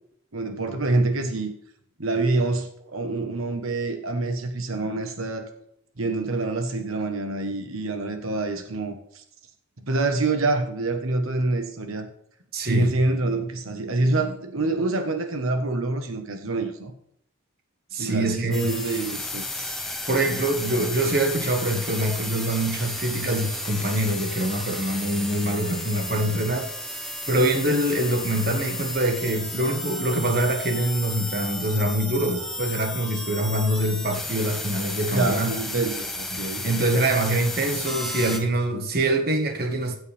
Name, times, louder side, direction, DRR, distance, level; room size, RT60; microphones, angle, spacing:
voice 1, 0.3-1.5 2.0-5.4 6.0-9.2 9.8-12.1 12.6-16.9 18.0-19.8 35.1-36.6, right 2 dB, 90° right, 1.4 m, -26 dB
voice 2, 12.5-12.9 17.9-18.7 20.1-26.7 27.3-35.5 36.3-40.0, right 1 dB, 45° right, 1.7 m, -24 dB
sound 1, 18.5-38.4, left 1 dB, ahead, 1.3 m, -33 dB
16.0 x 8.0 x 3.5 m
head